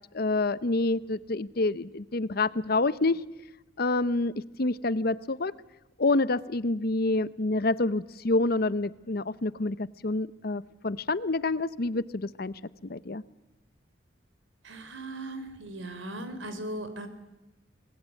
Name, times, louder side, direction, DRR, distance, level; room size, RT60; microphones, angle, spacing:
voice 1, 0.1-3.2 3.8-5.5 6.0-13.2, left 2 dB, 55° left, 17 dB, 0.8 m, -28 dB
voice 2, 14.6-17.1, right 1 dB, 85° right, 10 dB, 3.7 m, -38 dB
27.5 x 20.5 x 8.4 m, 0.99 s
head